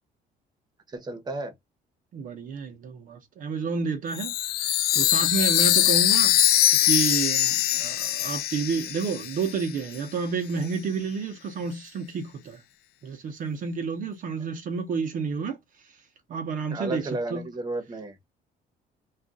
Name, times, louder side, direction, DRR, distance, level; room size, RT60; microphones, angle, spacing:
voice 1, 0.9-1.5 5.7-5.9 16.7-18.2, right 2 dB, 25° right, 1.0 m, -33 dB
voice 2, 2.1-6.5 6.8-12.6 13.0-16.0 16.3-17.5, right 5 dB, 55° right, 0.7 m, -30 dB
Chime, 4.1-9.7, left 13 dB, 65° left, 0.4 m, -22 dB
2.4 x 2.3 x 3.8 m
cardioid pair, 110°, 17 cm